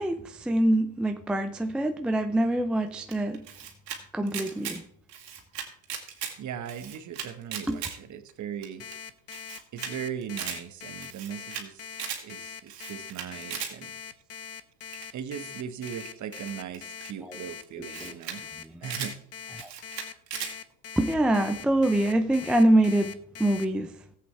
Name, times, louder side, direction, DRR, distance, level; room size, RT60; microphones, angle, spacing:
voice 1, 0.0-3.4 4.1-4.8 7.7-7.8 17.2-17.4 17.8-18.2 18.6-18.9 19.5-19.7 21.0-23.9, right 1 dB, ahead, 6 dB, 0.4 m, -25 dB
Camera, 3.1-4.0 4.3-4.8 5.1-6.3 6.7-7.9 8.3-8.4 8.6-8.7 8.9-9.0 9.3-9.9 10.2-10.6 11.0-11.6 11.9-12.2 12.7-13.7 14.9-15.2 15.8-17.1 17.6-17.7 17.9-18.4 18.6-19.1 19.6-20.5, right 8 dB, 85° right, 2.0 m, -37 dB
voice 2, 6.4-8.8 9.7-11.8 12.2-13.9 15.1-18.4 18.8-19.1, right 8 dB, 35° right, 10 dB, 1.3 m, -38 dB
Alarm, 8.8-23.6, left 7 dB, 30° left, 0.8 m, -42 dB
15.0 x 8.0 x 3.3 m, 0.66 s
hypercardioid pair, 90°, 48 cm